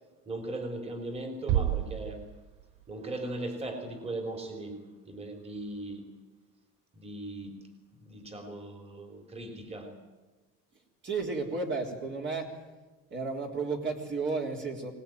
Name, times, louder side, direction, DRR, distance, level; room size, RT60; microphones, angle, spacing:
voice 1, 0.3-2.2 2.9-4.8 5.1-6.1 6.9-7.6 8.0-9.9, right 2 dB, 20° right, 4 dB, 3.7 m, -38 dB
sound 1, 1.5-3.4, right 12 dB, 65° right, 1.1 m, -31 dB
voice 2, 11.0-12.6 13.1-14.9, right 4 dB, 35° right, 0 dB, 3.7 m, -33 dB
24.5 x 19.5 x 9.4 m, 1.2 s
cardioid pair, 140°, 34 cm